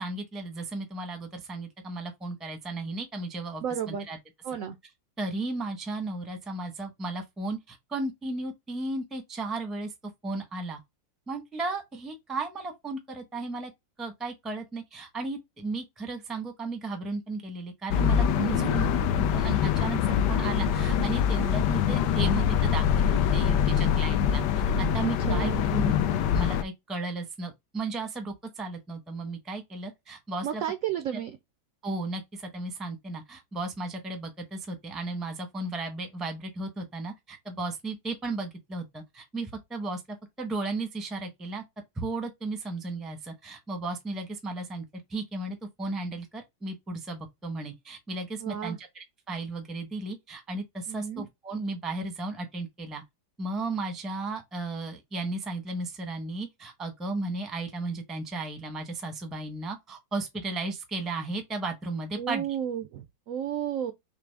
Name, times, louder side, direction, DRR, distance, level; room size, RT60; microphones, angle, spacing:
voice 1, 0.0-4.2 5.2-9.9 10.2-10.8 11.3-13.7 14.0-18.8 19.1-25.9 26.3-30.6 31.1-31.2 31.8-40.0 40.4-41.6 41.9-44.8 45.1-53.0 53.4-62.5, right 3 dB, ahead, 0.6 m, -35 dB
voice 2, 3.6-4.1 4.4-4.8 18.4-18.8 25.0-25.7 30.4-31.3 48.4-48.8 50.9-51.2 62.2-63.9, right 9 dB, 75° right, 0.8 m, -32 dB
sound 1, 17.9-26.6, left 8 dB, 75° left, 1.2 m, -24 dB
5.9 x 2.0 x 3.3 m
omnidirectional pair, 1.9 m